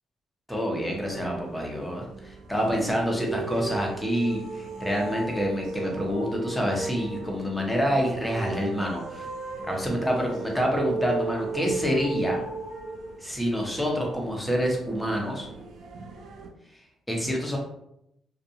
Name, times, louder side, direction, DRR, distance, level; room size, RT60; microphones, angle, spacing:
voice 1, 0.5-9.3 9.7-12.4 13.2-15.5 17.1-17.6, equal, 5° left, -1 dB, 0.8 m, -27 dB
sound 1, 0.9-16.5, right 4 dB, 70° right, 0.4 m, -36 dB
2.5 x 2.3 x 2.7 m, 0.79 s
cardioid pair, 75°, 0 cm